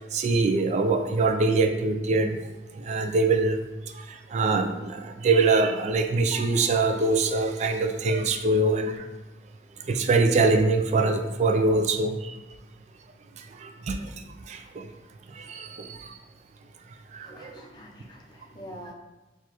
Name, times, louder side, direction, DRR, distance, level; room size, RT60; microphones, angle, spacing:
voice 1, 0.1-2.4 2.7-3.6 3.9-9.1 9.8-12.4 13.4-14.9 15.3-16.2 17.1-17.6, right 3 dB, 40° right, 6 dB, 0.3 m, -24 dB
voice 2, 17.2-18.9, equal, 25° left, 0 dB, 0.5 m, -45 dB
4.6 x 2.3 x 2.9 m, 1.1 s
head